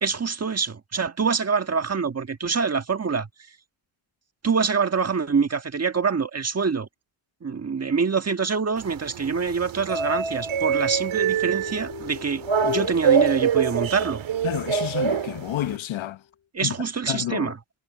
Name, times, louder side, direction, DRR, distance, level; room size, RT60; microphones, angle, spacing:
voice 1, 0.0-3.3 4.4-6.9 7.4-14.2 16.5-17.5, right 5 dB, 35° right, 1.5 m, -25 dB
sound 1, 8.8-15.8, right 7 dB, 80° right, 1.9 m, -25 dB
sound 2, 11.2-14.1 15.0-15.5, left 8 dB, 45° left, 2.8 m, -36 dB
voice 2, 14.4-16.2 16.6-16.7 17.1-17.5, left 13 dB, 80° left, 1.0 m, -29 dB
wide cardioid pair, 120°, 46 cm